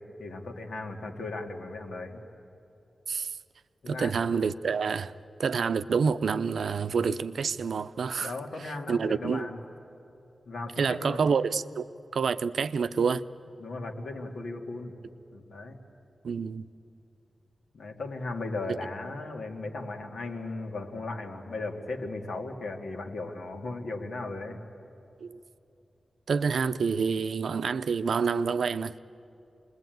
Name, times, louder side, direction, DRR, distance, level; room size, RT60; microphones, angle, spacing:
voice 1, 0.2-2.2 3.8-4.1 8.2-9.6 10.5-11.2 13.6-15.0 15.3-15.8 17.7-24.6, left 2 dB, 75° left, 2.4 m, -36 dB
voice 2, 3.9-5.1 5.4-8.3 8.9-9.5 10.8-11.9 12.1-13.2 16.2-16.6 18.7-18.8 25.2-25.4 26.3-29.0, right 5 dB, 85° right, 0.6 m, -27 dB
28.0 x 21.0 x 9.3 m
wide cardioid pair, 130°, 0 cm